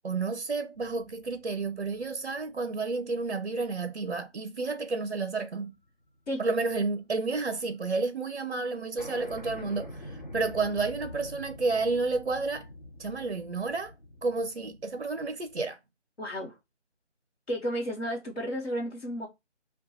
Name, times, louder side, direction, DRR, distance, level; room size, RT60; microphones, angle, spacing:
voice 1, 0.0-5.7 6.4-12.7 13.0-13.9 14.2-15.8, right 3 dB, 55° right, 0.5 m, -31 dB
sound 1, 0.7-3.4 3.8-3.9 5.4-5.8 6.0-7.5 7.8-7.9 8.1-8.2 8.5-8.6 9.0-15.7, left 1 dB, 40° left, 0.7 m, -46 dB
voice 2, 16.2-16.6 17.5-19.3, equal, 60° left, 1.1 m, -32 dB
2.4 x 2.2 x 4.0 m
figure-of-eight pair, 160°, 35 cm